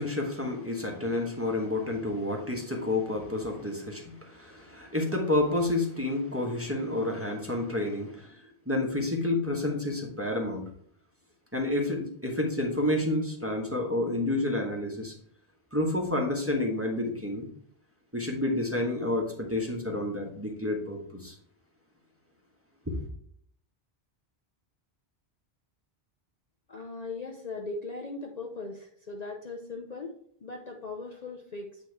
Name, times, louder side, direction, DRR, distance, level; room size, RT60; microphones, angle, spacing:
voice 1, 0.0-10.6 11.5-15.1 15.7-17.5 18.1-21.3, left 2 dB, 15° right, 0 dB, 1.1 m, -29 dB
voice 2, 26.7-30.1 30.4-31.8, left 3 dB, 45° left, 1 dB, 0.7 m, -39 dB
8.7 x 3.1 x 4.6 m, 0.63 s
omnidirectional pair, 1.1 m